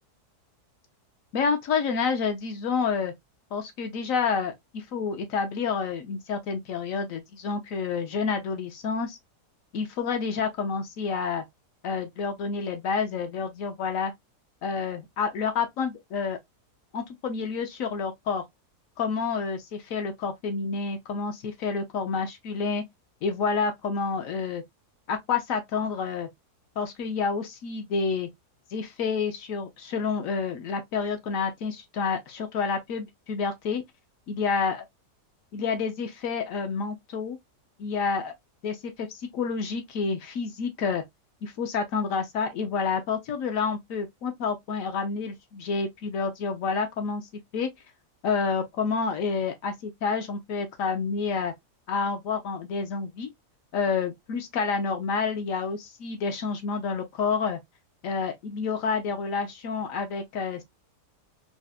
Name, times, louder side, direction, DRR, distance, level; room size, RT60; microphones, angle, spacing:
voice 1, 1.3-3.1 3.5-9.2 9.7-11.4 11.8-14.1 14.6-16.4 16.9-18.4 19.0-22.8 23.2-24.6 25.1-26.3 26.8-28.3 28.7-33.8 34.3-34.8 35.5-37.4 37.8-38.3 38.6-41.0 41.4-47.3 47.5-47.7 48.2-51.5 51.9-53.3 53.7-57.6 58.0-60.6, left 5 dB, 65° left, 0.9 m, -29 dB
4.1 x 2.0 x 2.2 m
omnidirectional pair, 1.7 m